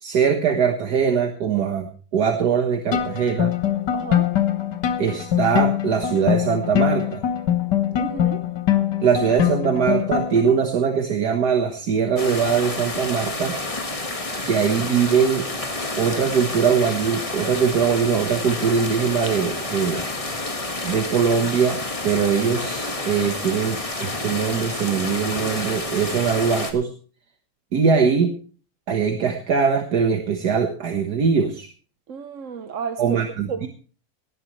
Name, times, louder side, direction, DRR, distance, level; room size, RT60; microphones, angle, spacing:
voice 1, 0.0-3.6 5.0-7.2 9.0-13.6 14.5-15.5 16.0-20.0 20.8-26.9 27.7-28.4 28.9-31.7 33.0-33.7, right 6 dB, 70° right, 1.9 m, -21 dB
sound 1, 2.9-10.6, left 11 dB, 85° left, 1.9 m, -23 dB
voice 2, 3.9-4.3 8.0-8.5 32.1-33.2 33.5-33.7, right 6 dB, 55° right, 1.1 m, -31 dB
sound 2, 12.2-26.7, left 2 dB, 20° left, 1.6 m, -29 dB
19.0 x 11.5 x 3.2 m
omnidirectional pair, 1.8 m